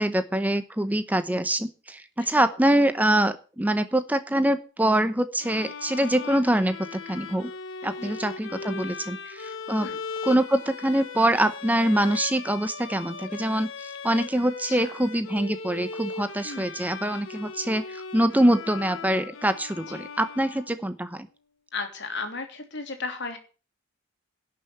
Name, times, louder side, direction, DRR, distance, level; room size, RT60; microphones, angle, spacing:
voice 1, 0.0-7.5 7.8-9.9 10.2-21.3, right 1 dB, 10° right, 11 dB, 0.8 m, -24 dB
sound 1, 5.4-21.1, left 5 dB, 80° left, 1.2 m, -38 dB
voice 2, 14.7-15.0 16.4-16.6 19.9-20.0 21.7-23.4, left 3 dB, 60° left, 6 dB, 3.0 m, -35 dB
11.5 x 6.7 x 8.6 m, 0.35 s
head